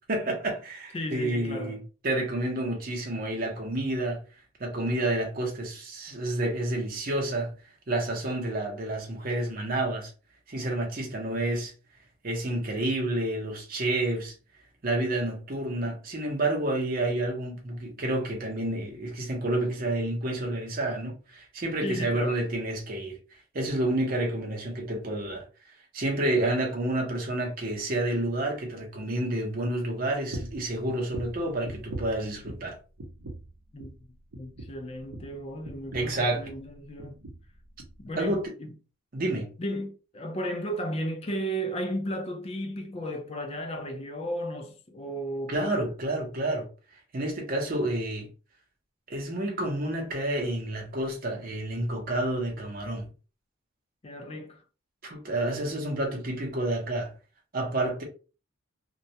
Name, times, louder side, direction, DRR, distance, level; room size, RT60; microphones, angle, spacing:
voice 1, 0.1-4.2 4.6-7.5 7.9-10.1 10.5-11.7 12.2-14.3 14.8-25.5 25.9-32.8 35.9-36.5 38.2-38.5 39.1-39.5 45.5-46.7 47.1-48.3 49.1-53.1 55.0-57.1 57.5-58.0, right 1 dB, 40° right, 0.7 m, -29 dB
voice 2, 0.9-1.8 21.8-22.4 33.7-34.1 34.4-37.2 38.0-38.7 39.6-45.9 54.0-54.6, equal, 25° left, 0.3 m, -34 dB
sound 1, 30.3-30.7 31.1-32.7 33.0-33.5 33.8-34.0 34.3-36.7 37.0-37.5 37.8-38.0 38.3-38.4, right 1 dB, 85° right, 0.7 m, -41 dB
2.2 x 2.0 x 2.7 m
head